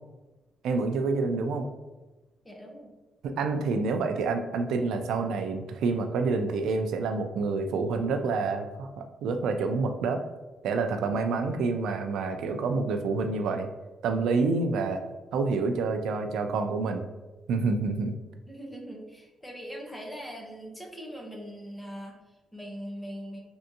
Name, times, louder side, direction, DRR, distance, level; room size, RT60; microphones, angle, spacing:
voice 1, 0.6-1.7 3.2-10.2 10.6-13.7 14.0-15.0 15.3-17.1 17.5-18.1, right 4 dB, 85° right, 6 dB, 0.3 m, -28 dB
voice 2, 2.4-2.9 18.5-23.4, equal, 10° left, 0 dB, 0.6 m, -41 dB
3.3 x 2.6 x 2.6 m, 1.1 s
cardioid pair, 120°, 0 cm